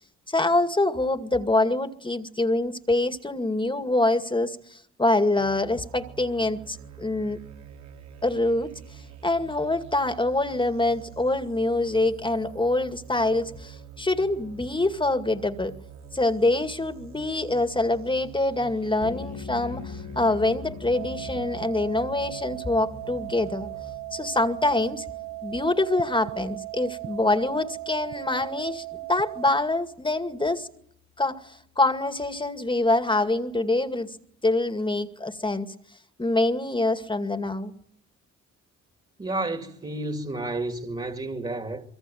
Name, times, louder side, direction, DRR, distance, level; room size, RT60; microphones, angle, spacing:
voice 1, 0.3-7.4 8.2-8.7 9.2-15.7 16.1-23.7 24.1-25.1 25.4-30.7 31.2-34.2 34.4-35.7 36.2-37.7, left 2 dB, 15° left, 2.2 m, -25 dB
sound 1, 5.4-23.9, right 7 dB, 65° right, 3.6 m, -46 dB
sound 2, 19.0-30.4, left 8 dB, 60° left, 2.7 m, -44 dB
sound 3, 20.9-29.5, right 21 dB, 45° right, 1.2 m, -37 dB
voice 2, 39.2-41.8, right 2 dB, 20° right, 2.7 m, -31 dB
25.0 x 23.5 x 9.4 m
cardioid pair, 90°, 30 cm